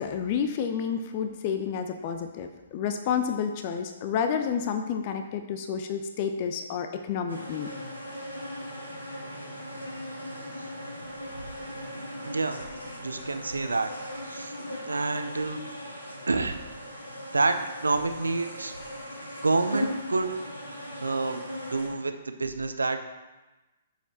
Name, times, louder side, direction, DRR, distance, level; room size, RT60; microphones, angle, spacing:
voice 1, 0.0-7.7, left 7 dB, 35° left, 7 dB, 0.8 m, -30 dB
sound 1, 7.3-21.9, equal, 85° left, 3.6 m, -38 dB
voice 2, 12.2-12.6 13.0-13.9 14.2-14.5 14.9-15.6 16.3-16.6 17.3-18.7 19.4-20.3 21.0-21.4 21.7-23.0, right 3 dB, 75° right, 8 dB, 0.9 m, -28 dB
9.4 x 7.0 x 4.3 m, 1.1 s
figure-of-eight pair, 120°, 0 cm